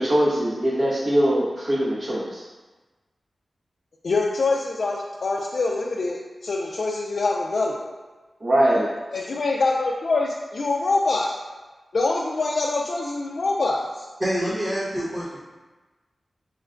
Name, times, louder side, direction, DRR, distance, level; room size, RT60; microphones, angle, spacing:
voice 1, 0.0-2.4 8.4-8.9, right 1 dB, 50° right, -7 dB, 0.9 m, -21 dB
voice 2, 4.0-7.9 9.1-11.4 11.9-14.1, left 3 dB, 65° left, -2 dB, 0.3 m, -24 dB
voice 3, 14.2-15.4, equal, 30° right, -12 dB, 1.3 m, -26 dB
6.2 x 2.2 x 2.5 m, 1.2 s
wide cardioid pair, 125°, 0 cm